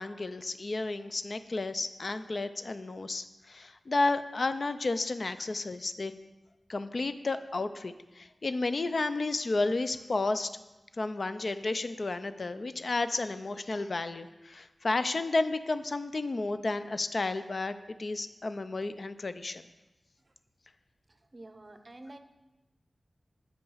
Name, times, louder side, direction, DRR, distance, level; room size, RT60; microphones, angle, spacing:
voice 1, 0.0-6.1 6.7-10.5 11.0-19.6, left 3 dB, 55° left, 11 dB, 0.4 m, -32 dB
voice 2, 21.1-22.2, right 1 dB, 40° right, 8 dB, 0.6 m, -49 dB
8.2 x 5.5 x 5.6 m, 1.0 s
wide cardioid pair, 70°, 0 cm